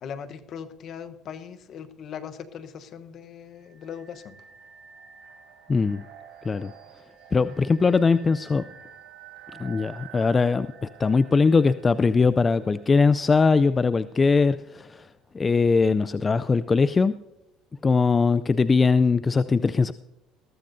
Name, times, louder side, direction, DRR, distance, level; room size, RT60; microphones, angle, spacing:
voice 1, 0.0-4.4, left 7 dB, 55° left, 11 dB, 1.0 m, -39 dB
sound 1, 3.5-14.3, right 8 dB, 70° right, 4.8 m, -49 dB
voice 2, 5.7-6.0 6.4-6.7 7.3-8.7 9.6-15.1 15.3-17.1 17.8-19.9, left 4 dB, 25° left, 15 dB, 0.4 m, -21 dB
20.5 x 14.0 x 2.7 m, 0.87 s
supercardioid pair, 80°, 0 cm